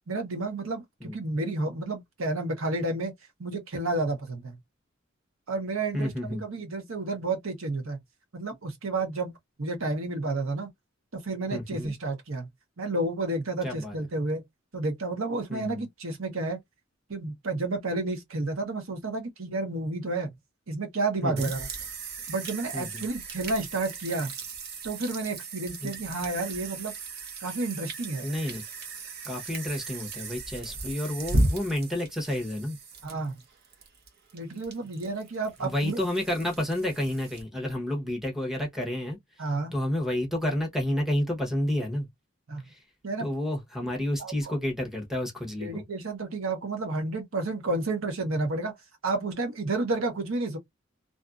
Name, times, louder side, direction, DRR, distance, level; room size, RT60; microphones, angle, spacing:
voice 1, 0.1-3.1 3.4-4.6 5.5-8.0 8.3-9.3 9.6-10.7 11.1-12.5 12.8-14.4 14.7-16.6 17.1-20.3 20.7-21.7 22.3-24.3 24.8-26.9 27.4-28.3 33.0-33.4 34.3-36.0 39.4-39.7 42.5-42.6 43.0-43.3 44.2-44.5 45.6-48.7 49.0-50.6, right 2 dB, 85° right, 1.0 m, -31 dB
voice 2, 5.9-6.4 11.5-11.9 13.6-14.0 15.5-15.8 21.2-21.5 22.7-23.0 25.8-25.9 28.2-28.6 29.2-32.8 35.6-39.4 39.7-42.1 42.6-42.8 43.2-45.8, left 1 dB, ahead, 0.8 m, -30 dB
sound 1, 21.4-37.4, right 2 dB, 50° right, 0.7 m, -35 dB
2.6 x 2.5 x 2.3 m
head